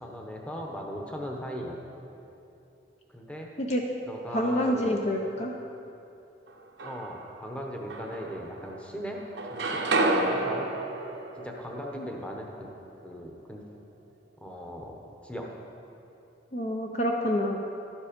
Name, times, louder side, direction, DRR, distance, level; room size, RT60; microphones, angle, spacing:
voice 1, 0.0-1.8 3.1-3.5 4.1-4.9 5.3-5.5 6.8-9.2 9.5-9.9 10.2-10.7 11.4-12.7 13.0-13.6 14.4-15.5, equal, 5° left, 0 dB, 0.9 m, -38 dB
voice 2, 4.3-5.5 12.0-12.1 16.5-17.6, equal, 40° left, 1 dB, 0.6 m, -27 dB
sound 1, 6.5-7.3 7.9-8.9 9.2-13.1, right 2 dB, 85° right, 1.0 m, -31 dB
12.0 x 7.3 x 5.2 m, 2.8 s
head